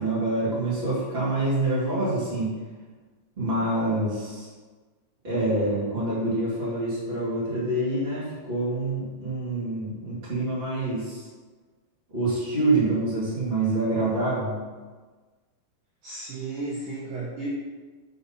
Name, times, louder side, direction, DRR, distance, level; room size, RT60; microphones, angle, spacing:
voice 1, 0.0-2.5 3.4-4.5 5.2-11.3 12.1-14.6, right 2 dB, 35° right, -10 dB, 0.9 m, -26 dB
voice 2, 16.0-17.5, right 2 dB, 85° right, -4 dB, 1.9 m, -33 dB
6.6 x 4.2 x 5.5 m, 1.4 s
omnidirectional pair, 5.2 m